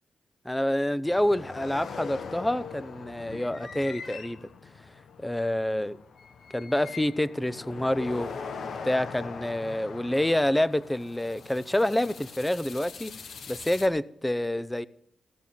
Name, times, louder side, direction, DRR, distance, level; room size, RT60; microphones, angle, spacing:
voice 1, 0.4-4.4 5.2-6.0 6.5-8.4 8.8-13.1 13.5-14.9, left 1 dB, 10° left, 0.8 m, -27 dB
sound 1, 1.0-13.9, left 5 dB, 75° left, 1.2 m, -42 dB
16.0 x 6.9 x 9.2 m
supercardioid pair, 50°, 0 cm